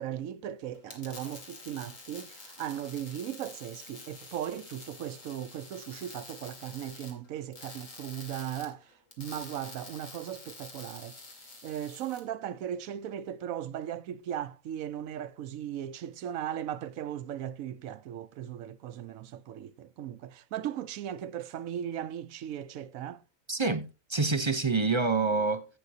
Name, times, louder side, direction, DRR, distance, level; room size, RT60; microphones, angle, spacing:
voice 1, 0.0-8.8 9.2-11.1 11.6-23.2, right 10 dB, 90° right, 1.1 m, -37 dB
sound 1, 0.7-12.2, left 3 dB, 75° left, 2.6 m, -48 dB
voice 2, 23.5-25.7, right 4 dB, 30° right, 0.5 m, -27 dB
16.0 x 6.1 x 2.7 m
omnidirectional pair, 1.4 m